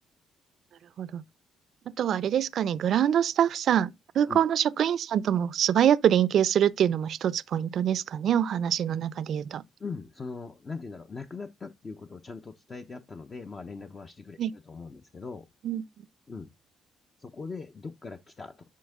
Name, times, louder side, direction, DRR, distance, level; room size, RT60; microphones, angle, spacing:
voice 1, 2.0-9.6 14.4-14.5 15.6-15.8, right 9 dB, 65° right, 0.5 m, -25 dB
voice 2, 9.8-15.5 16.3-16.5 17.2-18.7, left 4 dB, 35° left, 0.8 m, -40 dB
10.5 x 4.4 x 3.6 m
cardioid pair, 90°, 0 cm